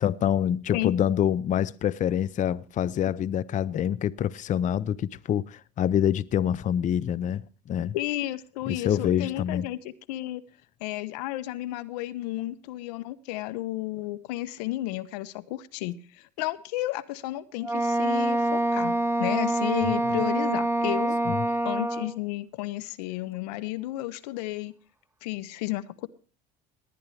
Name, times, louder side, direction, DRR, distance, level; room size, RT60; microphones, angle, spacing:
voice 1, 0.0-7.4 7.7-8.0 8.7-9.7 21.3-21.4, left 10 dB, 40° left, 0.5 m, -26 dB
voice 2, 7.9-10.4 10.8-21.2 21.6-24.7 25.2-26.1, left 16 dB, 80° left, 0.7 m, -32 dB
Wind instrument woodwind instrument, 17.6-22.2, right 1 dB, 10° right, 0.9 m, -26 dB
19.0 x 10.5 x 3.2 m
supercardioid pair, 85°, 20 cm